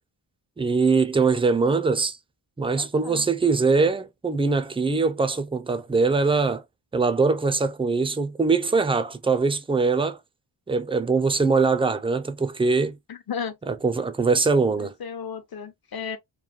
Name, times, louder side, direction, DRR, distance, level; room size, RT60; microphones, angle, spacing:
voice 1, 0.6-2.2 2.6-6.6 6.9-10.2 10.7-13.0 13.7-14.9, right 4 dB, 10° right, 0.4 m, -22 dB
voice 2, 2.8-3.3 13.1-13.6 14.8-16.2, left 7 dB, 50° left, 0.8 m, -34 dB
3.1 x 2.2 x 2.4 m
cardioid pair, 80°, 49 cm